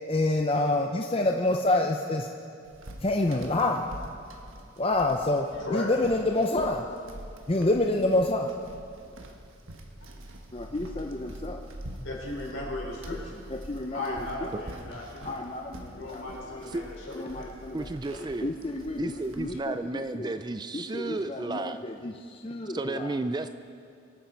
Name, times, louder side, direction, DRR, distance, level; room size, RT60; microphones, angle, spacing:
voice 1, 0.1-2.3 3.0-3.8 4.8-6.8 7.5-8.5 10.5-11.6 13.5-14.5 15.3-16.6 17.1-20.4 20.7-23.2, left 2 dB, 25° left, 2 dB, 0.6 m, -28 dB
sound 1, 2.6-19.6, right 1 dB, 80° right, 1.4 m, -45 dB
voice 2, 12.0-13.5 13.9-15.5 15.9-17.5, left 2 dB, 75° left, -3 dB, 4.2 m, -36 dB
voice 3, 17.7-18.5 19.0-21.8 22.7-23.5, right 2 dB, 20° right, 10 dB, 0.4 m, -32 dB
24.5 x 9.1 x 4.6 m, 2.5 s
head